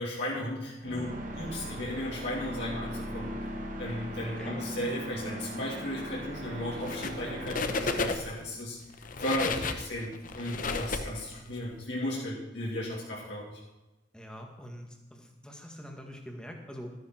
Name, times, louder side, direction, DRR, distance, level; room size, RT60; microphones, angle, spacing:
voice 1, 0.0-3.5 3.8-8.8 9.2-13.6, left 1 dB, 65° left, -6 dB, 2.9 m, -35 dB
sound 1, 0.8-8.1, equal, 40° right, 1.7 m, -39 dB
sound 2, 6.8-7.2 7.5-8.4 8.9-11.6, left 3 dB, 45° left, 0.9 m, -32 dB
voice 2, 14.1-16.9, equal, 5° left, 2 dB, 1.8 m, -44 dB
13.5 x 11.0 x 4.5 m, 1.1 s
head